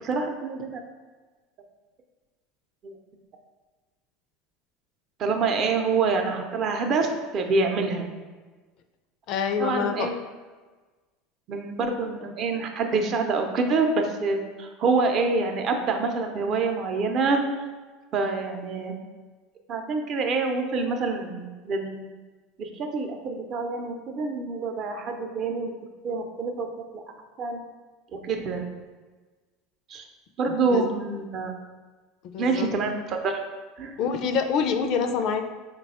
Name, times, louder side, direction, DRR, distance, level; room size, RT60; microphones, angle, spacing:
voice 1, 0.0-0.9 2.8-2.9 5.2-8.1 9.6-10.1 11.5-17.7 18.1-19.0 19.7-22.1 22.6-25.7 26.0-26.7 26.9-27.0 27.4-27.6 28.1-28.7 29.9-30.0 30.4-31.5 32.4-33.4 33.8-34.0, right 4 dB, 45° right, 4 dB, 0.6 m, -26 dB
voice 2, 9.3-10.1 30.5-30.8 32.2-32.7 34.0-35.4, left 6 dB, 60° left, 7 dB, 0.4 m, -26 dB
4.1 x 2.2 x 4.1 m, 1.3 s
supercardioid pair, 105°, 0 cm